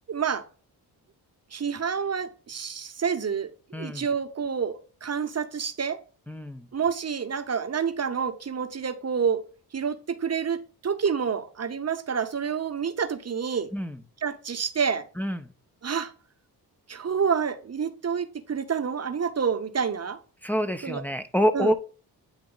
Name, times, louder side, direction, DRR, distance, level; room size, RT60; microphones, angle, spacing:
voice 1, 0.1-0.4 1.5-6.0 6.7-9.4 9.7-13.7 14.2-15.1 15.8-16.1 16.9-20.2 20.8-21.0 21.5-21.7, right 6 dB, 40° right, 0.8 m, -28 dB
voice 2, 3.7-4.1 6.3-6.7 13.7-14.0 15.2-15.5 20.4-21.7, equal, 5° left, 0.6 m, -27 dB
8.7 x 3.0 x 3.8 m
cardioid pair, 60°, 40 cm